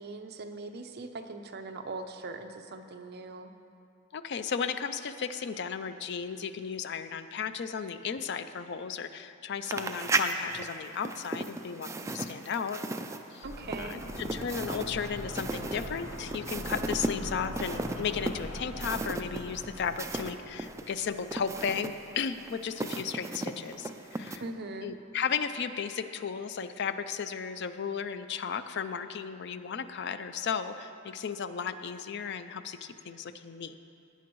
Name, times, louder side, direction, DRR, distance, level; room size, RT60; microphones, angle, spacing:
voice 1, 0.0-3.5 13.4-14.0 24.4-24.9, right 3 dB, 50° right, 6 dB, 0.6 m, -41 dB
voice 2, 4.1-12.8 13.3-13.4 13.8-24.4 24.8-33.8, left 6 dB, 55° left, 11 dB, 0.4 m, -35 dB
sound 1, 9.6-20.3 20.6-24.4, right 2 dB, 15° right, 0.4 m, -35 dB
sound 2, 13.4-22.1 22.4-22.5, left 1 dB, 80° left, 1.7 m, -42 dB
16.5 x 9.4 x 3.1 m, 2.5 s
head